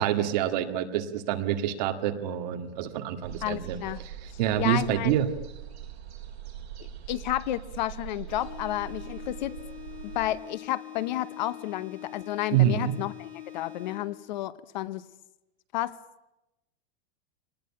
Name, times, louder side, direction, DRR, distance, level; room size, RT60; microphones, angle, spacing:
voice 1, 0.0-4.1 4.4-5.3 12.5-13.0, right 11 dB, 40° right, 6 dB, 1.9 m, -27 dB
sound 1, 3.2-10.3, right 9 dB, 80° right, 7.7 m, -42 dB
voice 2, 3.4-4.0 4.3-5.2 7.1-9.5 10.0-15.0 15.7-16.0, left 14 dB, 45° left, 16 dB, 0.8 m, -32 dB
sound 2, 8.3-14.3, left 12 dB, 5° left, 7.9 m, -44 dB
24.5 x 19.5 x 10.0 m, 0.97 s
supercardioid pair, 180°, 32 cm